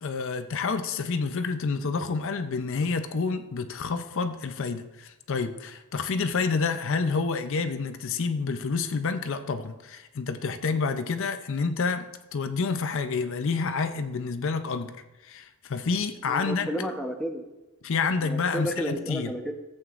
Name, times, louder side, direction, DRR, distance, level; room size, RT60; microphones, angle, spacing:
voice 1, 0.0-14.9 15.2-16.7 17.8-19.3, left 4 dB, 60° left, 8 dB, 0.5 m, -28 dB
voice 2, 16.3-17.4 18.2-19.5, equal, ahead, 2 dB, 0.7 m, -32 dB
14.0 x 7.8 x 2.5 m, 1.0 s
head